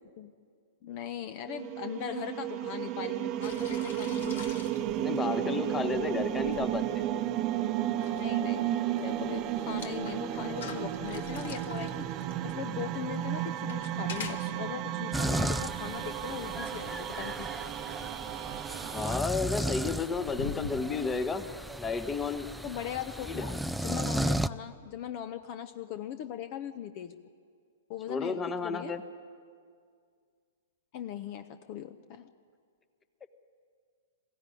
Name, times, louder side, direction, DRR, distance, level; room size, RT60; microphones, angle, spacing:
voice 1, 0.8-4.4 8.1-17.5 22.6-27.2 27.9-28.9 30.9-32.3, left 10 dB, 45° left, 11 dB, 0.9 m, -40 dB
sound 1, 1.5-19.2, right 12 dB, 35° right, 0.9 m, -33 dB
sound 2, 3.4-20.9, left 6 dB, 60° left, 1.8 m, -46 dB
voice 2, 5.0-7.0 18.8-21.5 21.8-22.5 23.2-23.5 28.1-29.0 33.2-33.3, left 4 dB, 15° left, 10 dB, 1.2 m, -32 dB
sound 3, 15.1-24.5, right 1 dB, ahead, 0.5 m, -35 dB
21.0 x 15.5 x 10.0 m, 2.1 s
figure-of-eight pair, 110°, 0 cm